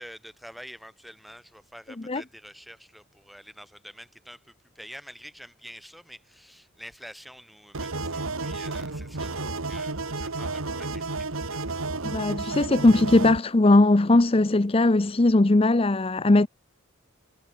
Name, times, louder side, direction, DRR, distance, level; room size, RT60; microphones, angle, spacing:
voice 1, 0.0-11.8, equal, ahead, 5.8 m, -47 dB
sound 1, 7.7-13.4, right 3 dB, 85° right, 2.0 m, -32 dB
voice 2, 12.0-16.5, left 2 dB, 25° left, 0.6 m, -19 dB
head